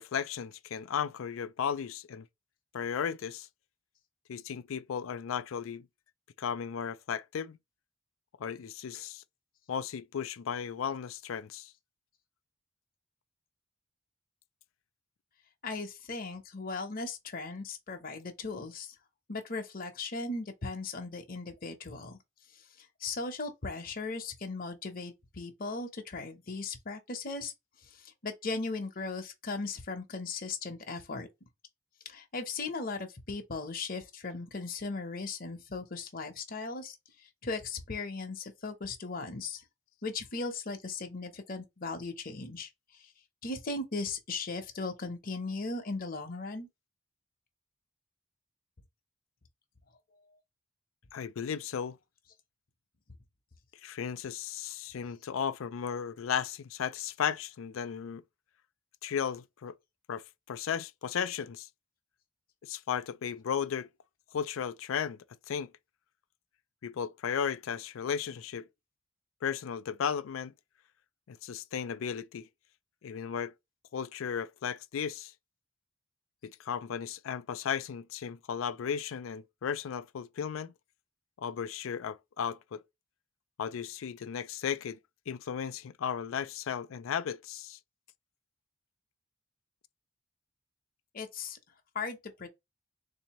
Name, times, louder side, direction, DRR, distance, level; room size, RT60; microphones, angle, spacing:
voice 1, 0.0-2.3 2.7-3.5 4.3-5.9 6.4-7.6 8.4-9.2 9.7-11.7 51.1-52.0 53.8-58.2 59.0-59.7 60.1-61.7 62.6-63.9 64.3-65.2 65.5-65.7 66.8-68.7 69.4-70.5 71.3-72.5 73.0-73.5 73.9-75.3 76.4-80.7 81.4-82.8 83.6-85.0 85.3-87.8, left 7 dB, 80° left, 0.4 m, -35 dB
voice 2, 15.6-18.9 19.3-22.2 23.0-27.5 27.9-31.3 32.1-37.0 37.4-39.6 40.0-42.7 43.4-46.7 91.1-91.6 91.9-92.5, left 3 dB, 45° left, 0.8 m, -37 dB
3.9 x 2.8 x 2.9 m
head